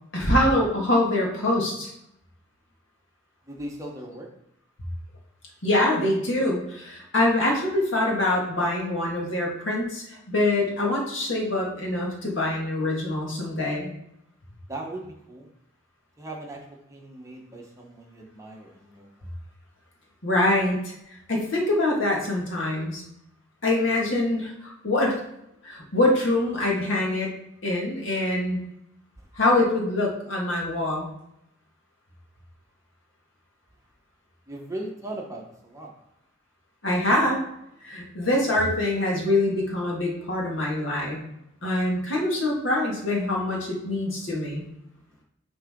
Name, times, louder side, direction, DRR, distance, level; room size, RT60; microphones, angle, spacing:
voice 1, 0.1-1.9 5.6-13.9 20.2-20.9 21.3-23.0 23.6-25.2 25.6-27.3 27.6-28.6 29.4-31.1 36.8-37.4 37.8-41.2 41.6-44.6, left 1 dB, 70° left, -2 dB, 1.9 m, -24 dB
voice 2, 3.5-4.3 14.7-15.5 16.2-19.1 34.5-35.9, right 1 dB, 15° right, 0 dB, 1.0 m, -38 dB
9.6 x 3.8 x 3.7 m, 0.80 s
head